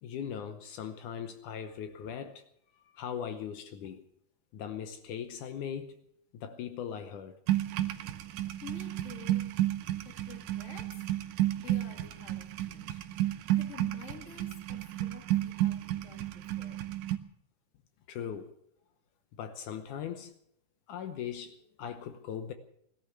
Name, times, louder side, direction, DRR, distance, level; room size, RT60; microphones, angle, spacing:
voice 1, 0.0-2.4 2.9-4.0 4.5-6.0 6.3-7.4 18.1-18.5 19.4-20.3 20.9-22.5, left 8 dB, 70° left, 2.3 m, -39 dB
sound 1, 7.5-17.2, right 14 dB, 75° right, 2.2 m, -32 dB
voice 2, 8.6-9.6 10.0-11.0 11.6-13.0 13.5-16.8, left 6 dB, 25° left, 1.8 m, -50 dB
17.5 x 12.5 x 6.8 m
omnidirectional pair, 3.8 m